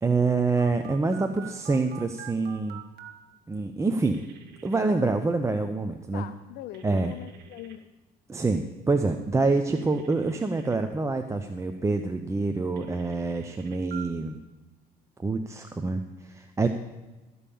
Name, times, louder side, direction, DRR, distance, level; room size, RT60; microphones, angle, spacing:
voice 1, 0.0-2.8 3.5-4.2 4.6-6.2 6.8-7.1 8.3-14.4 15.2-16.7, right 3 dB, 15° right, 6 dB, 0.7 m, -26 dB
Telephone, 0.6-3.1 4.1-4.8 6.7-7.8 9.8-10.8 12.8-14.0, right 10 dB, 70° right, 1.5 m, -46 dB
voice 2, 6.1-7.8, left 13 dB, 85° left, 10 dB, 0.5 m, -41 dB
13.5 x 5.5 x 8.5 m, 1.1 s
cardioid pair, 110°, 17 cm